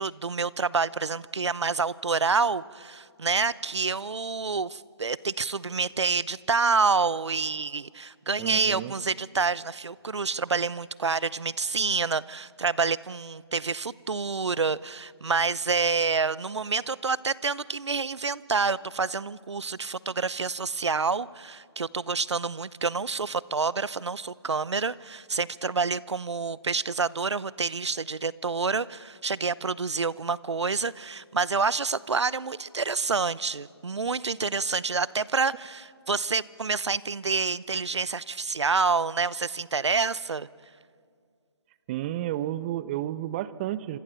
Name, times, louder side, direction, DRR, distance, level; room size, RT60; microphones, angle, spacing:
voice 1, 0.0-40.5, right 4 dB, 85° right, 20 dB, 0.7 m, -28 dB
voice 2, 8.4-8.9 41.9-44.0, right 13 dB, 25° right, 16 dB, 0.8 m, -31 dB
26.5 x 26.0 x 6.9 m, 2.2 s
figure-of-eight pair, 150°, 14 cm